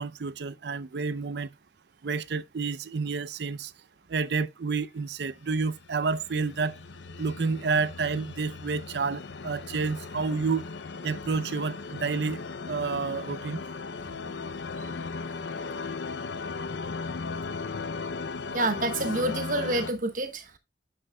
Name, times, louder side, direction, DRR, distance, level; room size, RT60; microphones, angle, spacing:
voice 1, 0.0-1.5 2.0-3.7 4.1-6.8 7.2-10.6 11.0-12.4 12.7-13.6, right 4 dB, 70° right, 0.5 m, -29 dB
sound 1, 5.6-19.9, left 4 dB, 90° left, 0.6 m, -37 dB
voice 2, 18.5-20.6, right 2 dB, 50° right, 1.1 m, -28 dB
9.8 x 7.8 x 2.2 m
head